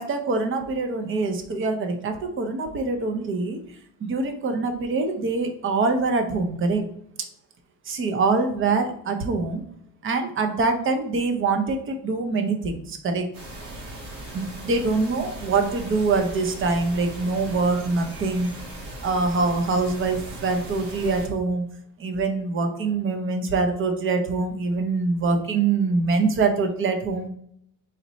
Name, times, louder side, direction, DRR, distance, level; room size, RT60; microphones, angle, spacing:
voice 1, 0.0-3.6 4.0-6.9 7.9-9.6 10.0-13.2 14.3-18.5 19.0-21.6 22.0-27.3, right 3 dB, 35° right, 6 dB, 0.7 m, -24 dB
sound 1, 13.3-21.3, right 1 dB, 65° right, 2.0 m, -38 dB
4.1 x 3.1 x 4.1 m, 0.70 s
cardioid pair, 130°, 37 cm